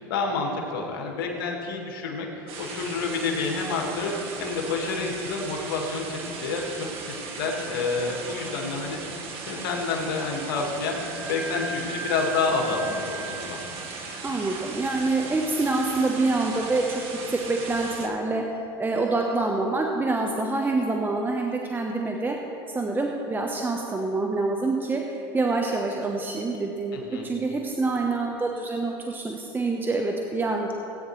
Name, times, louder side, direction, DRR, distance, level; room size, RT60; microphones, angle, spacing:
voice 1, 0.1-2.3 2.6-9.0 9.5-11.0 11.3-13.6 26.9-27.3, left 4 dB, 75° left, 0 dB, 2.0 m, -29 dB
sound 1, 2.5-18.1, right 4 dB, 50° right, 1.6 m, -38 dB
Wind instrument woodwind instrument, 10.8-18.2, right 5 dB, 90° right, 2.1 m, -40 dB
voice 2, 14.2-17.0 17.3-18.4 18.8-22.4 22.7-27.0 27.2-30.7, right 3 dB, 15° right, 1 dB, 1.0 m, -26 dB
17.5 x 9.1 x 3.2 m, 2.9 s
hypercardioid pair, 90°, 12 cm